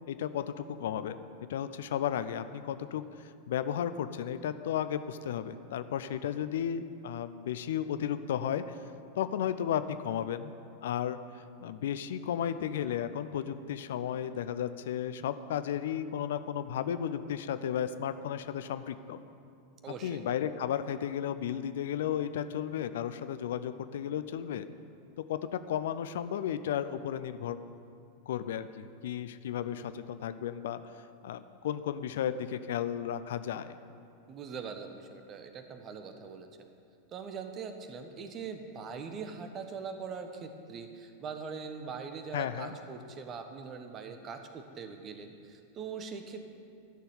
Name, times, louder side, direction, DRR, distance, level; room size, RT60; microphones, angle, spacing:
voice 1, 0.1-1.2 1.5-8.8 9.2-10.5 10.8-19.2 20.0-24.7 25.2-27.6 28.3-33.8 42.3-42.7, left 9 dB, 60° left, 12 dB, 0.5 m, -34 dB
voice 2, 19.8-20.2 34.3-36.5 37.1-46.4, right 5 dB, 30° right, 7 dB, 1.2 m, -42 dB
12.0 x 6.9 x 9.4 m, 2.4 s
figure-of-eight pair, 90°, 0 cm